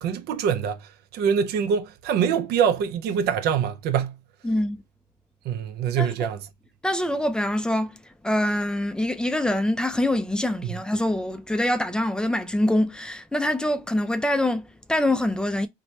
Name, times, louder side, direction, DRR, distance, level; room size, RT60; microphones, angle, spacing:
voice 1, 0.0-4.2 5.4-6.4, right 7 dB, 75° right, 0.5 m, -24 dB
voice 2, 4.4-4.8 6.0-6.1 6.8-15.7, left 1 dB, 5° left, 0.3 m, -25 dB
2.8 x 2.1 x 3.0 m
cardioid pair, 110°, 17 cm